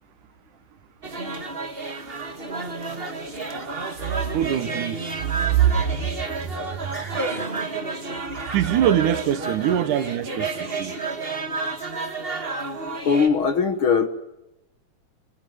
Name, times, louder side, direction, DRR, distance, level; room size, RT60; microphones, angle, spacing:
sound 1, 1.0-13.3, right 3 dB, 25° right, 1.5 m, -31 dB
Laughter, 2.1-3.7 4.0-4.6 5.0-5.2 5.9-6.0 6.2-6.4 6.7-7.5 7.9-8.8 9.4-9.6 10.0-10.5 10.9-11.4, equal, 5° left, 4.8 m, -45 dB
voice 1, 4.2-6.1 6.4-7.2 8.5-10.9, right 10 dB, 90° right, 2.7 m, -24 dB
voice 2, 13.0-14.1, left 6 dB, 50° left, 1.8 m, -20 dB
25.5 x 21.5 x 9.5 m
omnidirectional pair, 3.5 m